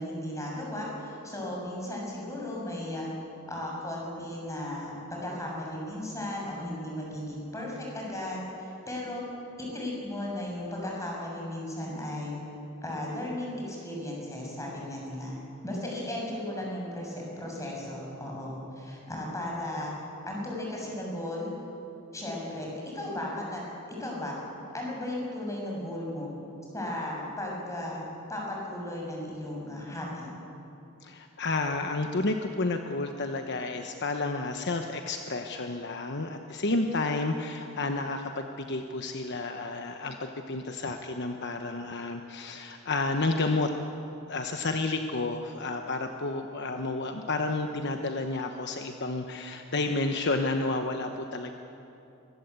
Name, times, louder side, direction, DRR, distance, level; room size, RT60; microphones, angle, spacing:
voice 1, 0.0-3.1 3.5-9.2 9.6-12.3 12.8-15.3 15.6-19.9 20.2-21.5 22.1-23.6 24.0-24.3 24.7-26.3 26.7-28.0 28.3-30.3, left 1 dB, 15° left, -2 dB, 6.8 m, -35 dB
voice 2, 31.0-43.7 44.3-51.5, left 2 dB, 55° left, 5 dB, 1.1 m, -31 dB
23.5 x 21.0 x 8.3 m, 2.8 s
head